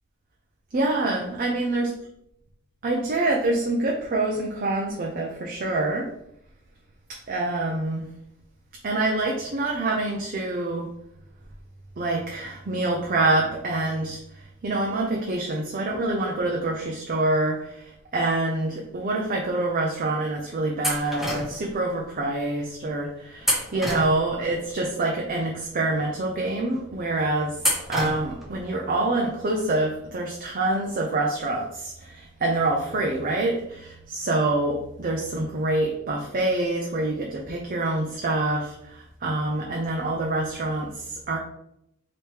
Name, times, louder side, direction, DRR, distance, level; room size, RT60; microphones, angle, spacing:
voice 1, 0.7-1.9 2.8-6.1 7.1-8.1 8.8-10.9 12.0-27.6 27.9-41.4, right 2 dB, 45° right, -1 dB, 0.5 m, -26 dB
sound 1, 20.8-21.7 23.4-24.5 27.6-28.5, equal, ahead, 0.7 m, -28 dB
3.4 x 3.1 x 4.4 m, 0.77 s
head